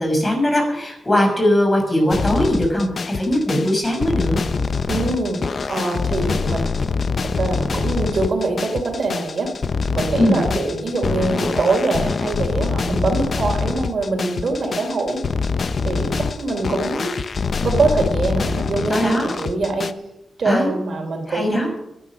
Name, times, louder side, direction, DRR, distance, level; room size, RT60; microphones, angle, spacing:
voice 1, 0.0-4.4 10.2-10.4 18.9-19.3 20.4-20.7 21.3-21.7, left 1 dB, 30° left, 3 dB, 5.9 m, -19 dB
drilla Rendered, 2.1-19.9, left 4 dB, 60° left, 0.8 m, -24 dB
voice 2, 4.9-6.8 7.2-15.2 15.8-17.1 17.6-19.9 20.4-21.7, right 3 dB, 65° right, 4 dB, 3.4 m, -23 dB
13.0 x 11.0 x 6.2 m, 0.84 s
cardioid pair, 65°, 0 cm